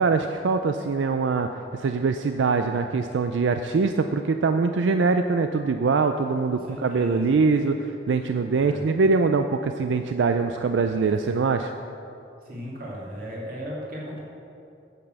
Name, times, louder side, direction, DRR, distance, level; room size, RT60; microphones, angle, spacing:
voice 1, 0.0-11.7, right 4 dB, 85° right, 7 dB, 0.4 m, -23 dB
voice 2, 6.5-7.4 8.6-8.9 11.0-11.4 12.4-14.2, equal, 50° right, -4 dB, 2.5 m, -37 dB
9.0 x 8.1 x 6.4 m, 2.7 s
head